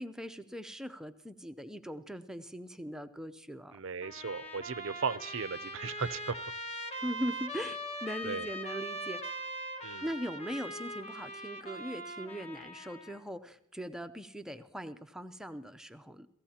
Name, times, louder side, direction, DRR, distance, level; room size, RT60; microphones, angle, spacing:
voice 1, 0.0-3.8 7.0-9.2 10.0-16.3, equal, 5° right, 8 dB, 0.6 m, -40 dB
voice 2, 3.7-6.3 8.2-8.5 9.8-10.0, right 5 dB, 60° right, 16 dB, 0.5 m, -36 dB
Trumpet, 4.0-13.2, equal, 30° left, 1.2 m, -41 dB
29.5 x 15.0 x 2.9 m, 0.77 s
head